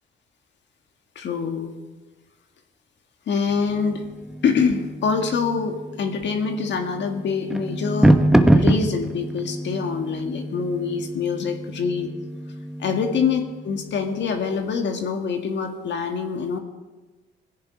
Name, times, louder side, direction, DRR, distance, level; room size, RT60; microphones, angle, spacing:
voice 1, 1.2-1.8 3.3-4.1 4.4-8.2 8.5-12.1 12.8-16.6, left 5 dB, 65° left, 5 dB, 1.9 m, -25 dB
sound 1, 3.5-14.3, right 1 dB, ahead, 1.2 m, -25 dB
17.0 x 16.0 x 5.2 m, 1.2 s
cardioid pair, 90°, 20 cm